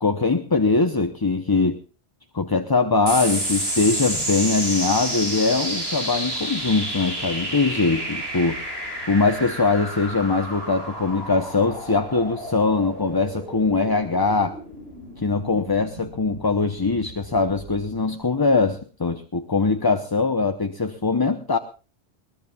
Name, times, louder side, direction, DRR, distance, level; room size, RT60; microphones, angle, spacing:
voice 1, 0.0-1.8 2.3-8.6 9.1-14.6 15.2-21.6, left 3 dB, 20° left, 7 dB, 0.8 m, -22 dB
sound 1, 3.1-17.9, right 1 dB, 60° right, 5.3 m, -31 dB
21.0 x 20.5 x 2.4 m, 0.34 s
omnidirectional pair, 1.1 m